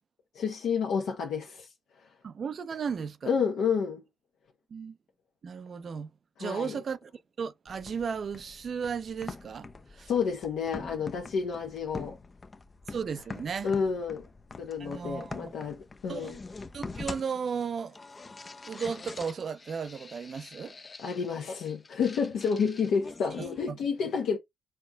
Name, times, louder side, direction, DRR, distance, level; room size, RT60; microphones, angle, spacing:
voice 1, 0.3-1.7 3.3-4.0 6.4-6.8 10.1-12.2 13.6-14.2 14.6-16.4 21.0-24.4, left 6 dB, 75° left, 0.9 m, -30 dB
voice 2, 2.2-3.3 4.7-5.0 5.4-6.1 6.4-7.1 7.4-10.1 12.9-13.7 14.8-15.5 16.1-16.3 16.7-18.0 18.7-20.8 23.7-23.8, right 6 dB, 50° right, 0.5 m, -35 dB
sound 1, 7.7-23.7, left 3 dB, 30° left, 0.4 m, -45 dB
4.2 x 3.6 x 2.2 m
cardioid pair, 90°, 0 cm